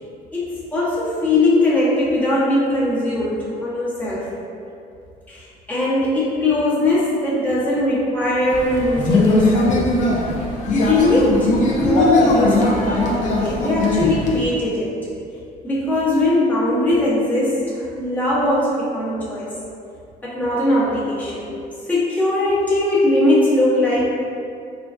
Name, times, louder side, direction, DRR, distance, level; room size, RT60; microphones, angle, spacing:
voice 1, 0.3-4.2 5.3-9.8 10.7-11.5 11.8-14.9 15.6-19.5 20.2-21.5 21.9-24.1, left 1 dB, 10° left, -9 dB, 0.9 m, -20 dB
sound 1, 8.5-14.5, left 2 dB, 45° left, 0.5 m, -19 dB
3.3 x 2.2 x 2.4 m, 2.5 s
cardioid pair, 110°, 17 cm